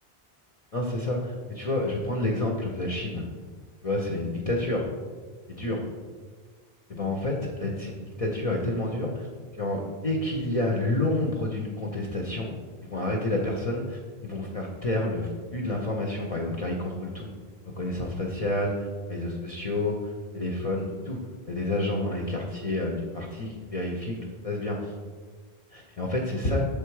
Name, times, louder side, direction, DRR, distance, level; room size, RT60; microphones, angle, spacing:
voice 1, 0.7-3.3 3.8-4.9 5.5-5.8 6.9-9.3 9.5-12.5 12.8-17.3 17.8-21.2 21.5-24.2 24.4-24.9 25.7-26.7, left 1 dB, 40° left, -1 dB, 0.6 m, -29 dB
6.7 x 3.4 x 4.6 m, 1.5 s
omnidirectional pair, 1.1 m